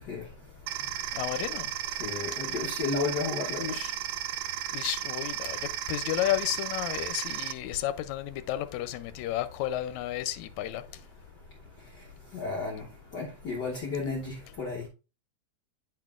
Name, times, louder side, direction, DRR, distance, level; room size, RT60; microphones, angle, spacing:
sound 1, 0.7-7.5, right 11 dB, 80° right, 1.5 m, -34 dB
voice 1, 1.1-1.7 2.3-2.4 3.7-4.0 4.7-10.8, left 13 dB, 80° left, 1.9 m, -32 dB
voice 2, 2.0-3.7 12.3-12.8 13.1-14.9, left 4 dB, 55° left, 1.2 m, -32 dB
8.7 x 5.9 x 2.4 m
omnidirectional pair, 3.3 m